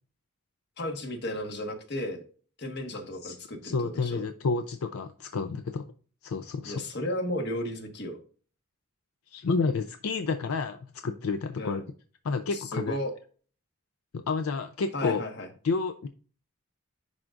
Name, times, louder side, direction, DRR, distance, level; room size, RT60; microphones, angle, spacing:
voice 1, 0.8-2.2 2.6-4.3 6.6-8.2 11.6-11.9 12.5-13.1 14.9-15.5, left 1 dB, 50° left, 5 dB, 1.3 m, -34 dB
voice 2, 3.6-5.9 6.2-6.8 9.3-11.8 12.2-13.0 14.1-15.2 15.6-16.1, left 4 dB, 75° left, 8 dB, 0.5 m, -30 dB
10.5 x 3.8 x 2.4 m, 0.41 s
head